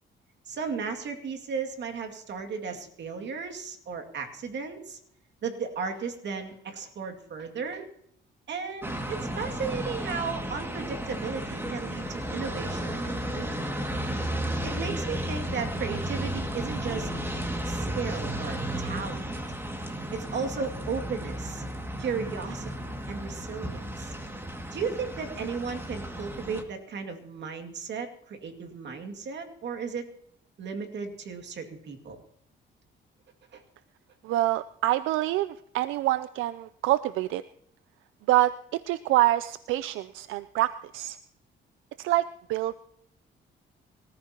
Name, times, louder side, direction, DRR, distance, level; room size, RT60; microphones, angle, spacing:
voice 1, 0.5-5.0 5.4-7.9 8.5-13.7 14.6-17.1 17.7-19.3 20.1-21.6 22.0-24.1 24.7-30.1 30.6-32.2 33.5-33.6, right 5 dB, 65° right, 4 dB, 2.4 m, -35 dB
sound 1, 8.8-26.6, right 1 dB, 10° right, 2.2 m, -33 dB
voice 2, 34.2-37.4 38.3-41.2 42.0-42.7, right 15 dB, 90° right, 15 dB, 0.5 m, -26 dB
24.5 x 14.0 x 2.9 m, 0.68 s
cardioid pair, 90°, 20 cm